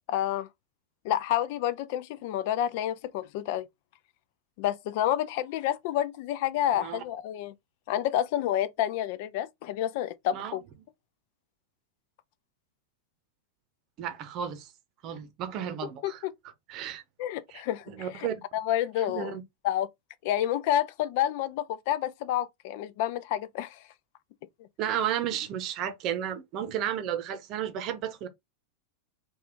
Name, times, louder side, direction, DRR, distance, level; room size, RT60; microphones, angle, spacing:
voice 1, 0.1-0.5 1.0-3.7 4.6-7.5 7.9-10.6 16.0-16.3 17.2-18.3 18.5-19.3 19.6-19.9 20.2-23.8, left 11 dB, 50° left, 0.3 m, -29 dB
voice 2, 14.0-14.7 15.0-16.2 16.7-17.0 17.5-17.6 17.9-18.4 19.1-19.4 24.8-28.3, right 9 dB, 40° right, 0.7 m, -33 dB
3.4 x 2.4 x 3.7 m
figure-of-eight pair, 90°, 0 cm